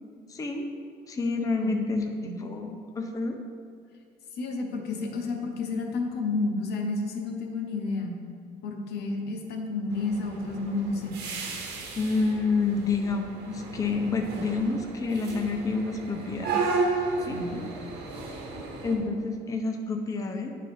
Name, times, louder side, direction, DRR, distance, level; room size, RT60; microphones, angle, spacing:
voice 1, 0.3-0.7 1.1-3.4 12.0-16.6 17.2-17.4 18.8-20.5, left 3 dB, 20° left, 3 dB, 0.5 m, -28 dB
voice 2, 2.2-2.5 4.3-8.2 8.6-11.2 17.3-17.6, left 3 dB, 75° left, 3 dB, 0.9 m, -31 dB
sound 1, 9.9-19.0, right 3 dB, 80° right, 1.0 m, -34 dB
9.8 x 3.8 x 3.3 m, 2.2 s
cardioid pair, 110°, 17 cm